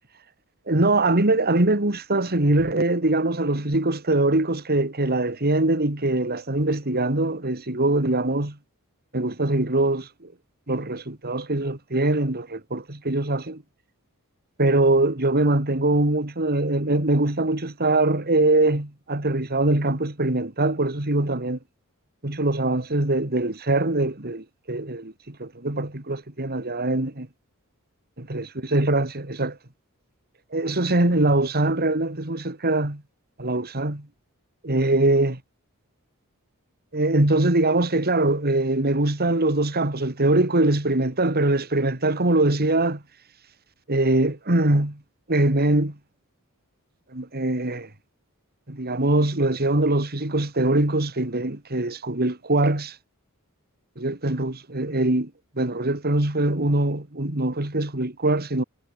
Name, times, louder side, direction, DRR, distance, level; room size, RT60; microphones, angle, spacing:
voice 1, 0.7-8.6 9.1-10.3 10.7-13.6 14.6-21.6 22.2-27.3 28.2-29.6 30.5-33.0 33.4-34.1 34.6-35.4 36.9-43.0 43.9-45.0 45.3-46.0 47.1-47.9 48.7-53.0 54.0-55.3 55.6-58.6, right 2 dB, 45° right, 2.9 m, -22 dB
head